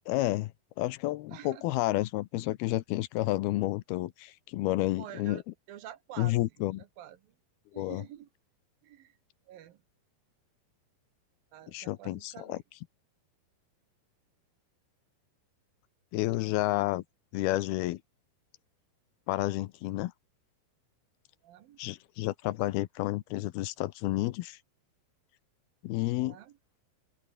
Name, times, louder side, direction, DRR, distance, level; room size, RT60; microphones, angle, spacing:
voice 1, 0.1-0.5 0.8-5.4 6.2-6.8 7.7-8.0 11.7-12.6 16.1-17.0 17.3-18.0 19.3-20.1 21.8-24.6 25.8-26.4, left 17 dB, 80° left, 2.7 m, -30 dB
voice 2, 1.3-1.7 5.0-5.4 5.7-6.4 6.8-7.3 7.7-8.3 8.8-9.2 9.5-9.8 11.5-12.6 21.4-21.8 26.2-26.6, right 12 dB, 70° right, 3.0 m, -48 dB
omnidirectional pair, 4.6 m